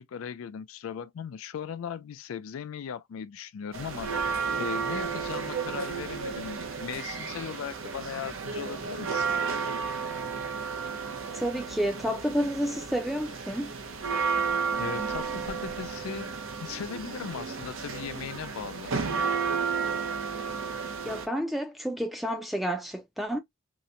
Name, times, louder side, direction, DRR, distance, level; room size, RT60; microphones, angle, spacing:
voice 1, 0.0-9.3 14.8-18.9, left 7 dB, 80° left, 0.3 m, -38 dB
sound 1, 3.7-21.3, right 5 dB, 75° right, 0.6 m, -32 dB
voice 2, 11.3-13.7 21.0-23.4, equal, ahead, 0.4 m, -30 dB
2.9 x 2.1 x 2.4 m
head